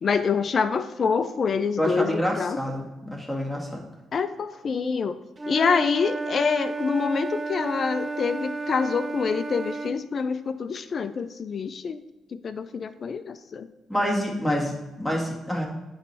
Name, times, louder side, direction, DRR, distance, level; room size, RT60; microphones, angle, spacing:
voice 1, 0.0-2.6 4.1-5.2 5.5-12.0 12.4-13.7, left 5 dB, 45° left, 12 dB, 0.5 m, -26 dB
voice 2, 1.8-3.8 13.9-15.7, equal, ahead, -2 dB, 1.8 m, -27 dB
Wind instrument woodwind instrument, 5.4-10.0, right 3 dB, 30° right, 0.5 m, -32 dB
9.8 x 3.3 x 4.2 m, 1.1 s
cardioid pair, 90°, 0 cm